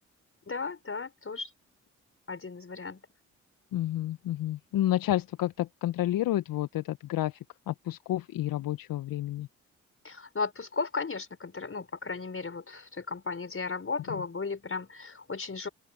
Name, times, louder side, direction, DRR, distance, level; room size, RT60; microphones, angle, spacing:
voice 1, 0.5-1.5 2.3-3.0 10.0-15.7, left 4 dB, 35° left, 6.1 m, -35 dB
voice 2, 3.7-9.5, left 13 dB, 65° left, 1.3 m, -30 dB
open air
hypercardioid pair, 40°, 37 cm